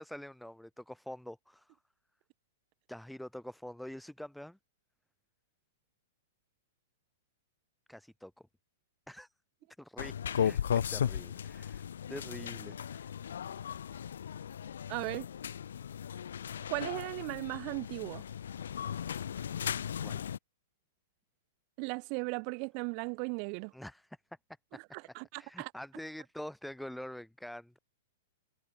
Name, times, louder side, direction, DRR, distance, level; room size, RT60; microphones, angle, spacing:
voice 1, 0.0-1.8 2.9-4.6 7.9-8.3 9.1-9.3 9.8-13.1 20.0-20.3 23.7-24.2 24.7-24.8 25.3-27.8, left 1 dB, ahead, 2.7 m, -46 dB
sound 1, 10.0-20.4, left 8 dB, 75° left, 1.7 m, -36 dB
voice 2, 14.9-15.3 16.7-18.2 21.8-23.7 24.9-25.7, right 40 dB or more, 45° right, 2.1 m, -37 dB
hypercardioid pair, 115°, 0 cm